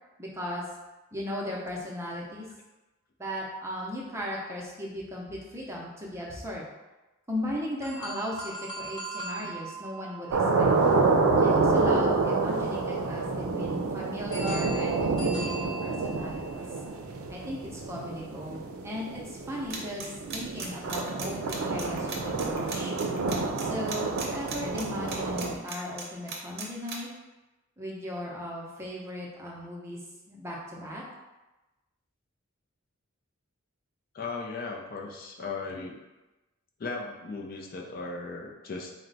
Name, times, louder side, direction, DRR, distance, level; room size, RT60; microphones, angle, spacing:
voice 1, 0.2-0.6 1.1-2.5 3.2-6.6 7.3-10.3 10.6-10.7 11.4-16.6 17.3-22.9 23.6-27.1 27.8-30.0 30.3-31.0, left 1 dB, 15° right, -3 dB, 0.6 m, -37 dB
sound 1, 7.8-11.9 14.3-16.7, right 2 dB, 20° left, 0.8 m, -41 dB
sound 2, 10.3-25.5, right 3 dB, 90° right, 0.4 m, -28 dB
sound 3, 19.7-26.9, right 5 dB, 50° right, 0.7 m, -37 dB
voice 2, 34.1-36.0 36.8-38.9, left 3 dB, 45° left, 0 dB, 0.4 m, -37 dB
4.3 x 2.1 x 3.9 m, 1.1 s
head